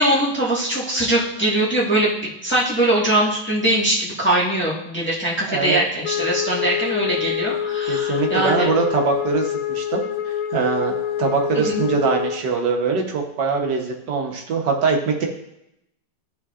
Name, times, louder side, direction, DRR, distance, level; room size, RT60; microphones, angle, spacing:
voice 1, 0.0-8.7 11.5-11.8, right 1 dB, 5° left, -5 dB, 1.2 m, -21 dB
voice 2, 5.5-5.8 7.9-10.0 10.5-15.3, right 5 dB, 75° right, 2 dB, 1.6 m, -22 dB
Wind instrument woodwind instrument, 6.0-12.5, left 10 dB, 70° left, 1.1 m, -26 dB
13.0 x 4.4 x 2.4 m, 0.83 s
omnidirectional pair, 1.9 m